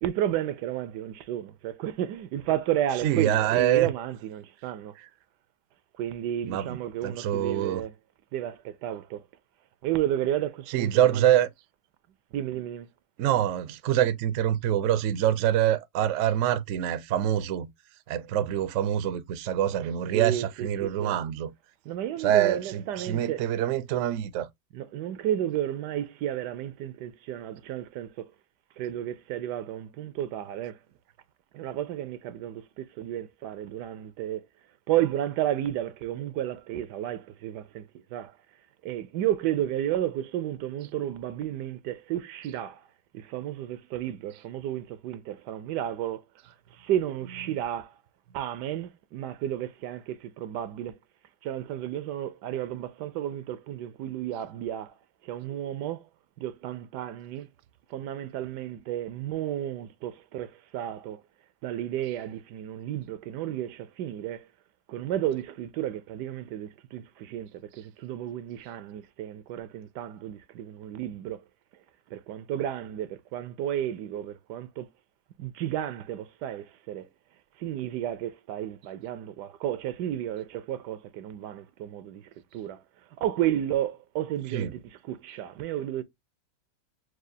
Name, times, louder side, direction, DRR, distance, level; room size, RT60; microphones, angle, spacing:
voice 1, 0.0-4.9 6.0-7.9 8.3-9.3 9.8-11.2 12.3-12.9 20.1-21.2 21.8-23.5 24.7-28.3 28.8-30.8 31.5-34.5 34.9-38.4 38.8-42.8 43.1-47.9 48.3-51.0 51.4-54.9 55.2-56.1 56.4-57.5 57.9-61.2 61.6-64.5 64.9-71.4 72.1-74.9 75.4-77.1 77.6-82.8 83.2-86.0, right 11 dB, 80° right, 1.2 m, -32 dB
voice 2, 3.0-3.9 6.4-6.8 7.0-7.8 10.7-11.5 13.2-17.7 18.1-21.5 22.2-24.5 84.5-84.7, right 11 dB, 65° right, 0.8 m, -25 dB
6.2 x 2.4 x 2.6 m
omnidirectional pair, 1.8 m